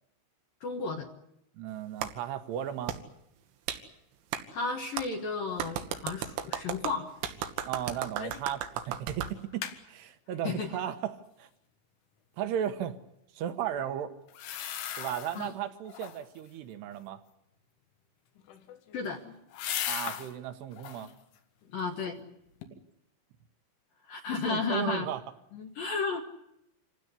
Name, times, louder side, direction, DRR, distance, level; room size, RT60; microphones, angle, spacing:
voice 1, 0.6-1.1 4.5-7.1 10.4-10.7 15.4-15.5 18.9-19.2 21.7-22.2 24.1-25.1 25.5-26.2, left 4 dB, 60° left, 3 dB, 2.6 m, -33 dB
voice 2, 1.5-3.0 7.6-11.5 12.4-13.0 13.3-14.1 15.0-17.2 19.9-21.1 24.4-25.2, right 10 dB, 70° right, 10 dB, 2.8 m, -35 dB
Clapping, 2.0-2.1 2.9-3.0 3.7-3.8 4.3-4.4 5.0-5.1 5.6-9.3, right 9 dB, 85° right, 4.0 m, -35 dB
sound 1, 8.2-8.5 8.9-9.0 9.3-9.8 14.3-15.5 15.9-16.4 18.4-20.3 20.7-21.1 21.6-22.3 22.6-22.7, left 10 dB, 80° left, 4.0 m, -38 dB
27.0 x 16.5 x 9.8 m, 0.82 s
omnidirectional pair, 5.5 m